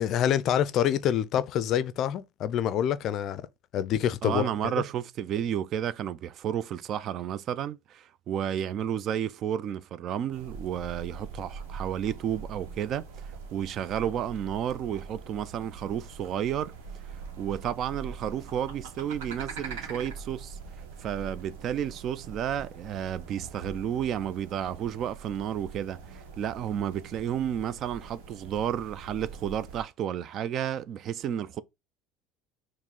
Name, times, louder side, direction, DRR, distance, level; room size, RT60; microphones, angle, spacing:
voice 1, 0.0-3.5 3.7-4.5, left 10 dB, 55° left, 0.4 m, -26 dB
voice 2, 4.2-16.7 17.4-20.6 21.0-31.6, right 9 dB, 50° right, 0.3 m, -32 dB
sound 1, 10.3-29.8, right 5 dB, 70° right, 1.0 m, -43 dB
4.6 x 2.1 x 3.6 m
hypercardioid pair, 70°, 0 cm